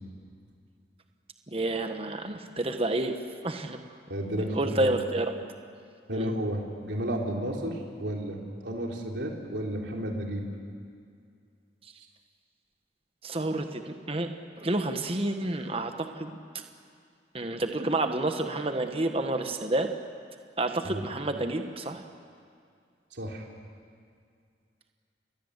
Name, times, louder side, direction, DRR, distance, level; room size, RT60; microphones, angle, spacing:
voice 1, 1.5-3.2 3.4-3.8 4.5-5.3 6.1-6.3 13.2-14.3 14.6-16.4 17.3-19.9 20.6-22.0, right 2 dB, 30° right, 6 dB, 1.3 m, -29 dB
voice 2, 4.1-5.0 6.1-10.4 20.8-21.1 23.1-23.5, right 1 dB, 75° right, 0 dB, 3.5 m, -32 dB
29.0 x 22.0 x 8.2 m, 2.2 s
head